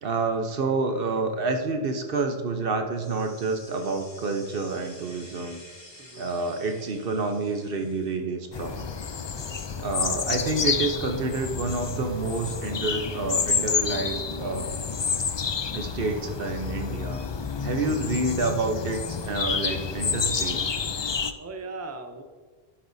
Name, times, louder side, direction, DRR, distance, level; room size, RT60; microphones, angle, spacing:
voice 1, 0.0-5.6 6.2-8.9 9.7-14.7 15.7-17.2 17.6-20.7, right 3 dB, 65° right, 5 dB, 1.0 m, -28 dB
sound 1, 2.9-8.2, left 1 dB, 25° left, 1.9 m, -49 dB
voice 2, 5.9-6.3 9.2-9.8 21.4-22.2, right 3 dB, 15° right, 6 dB, 0.6 m, -40 dB
sound 2, 8.5-21.3, left 6 dB, 45° left, 0.3 m, -29 dB
12.0 x 10.0 x 2.7 m, 1.4 s
omnidirectional pair, 1.1 m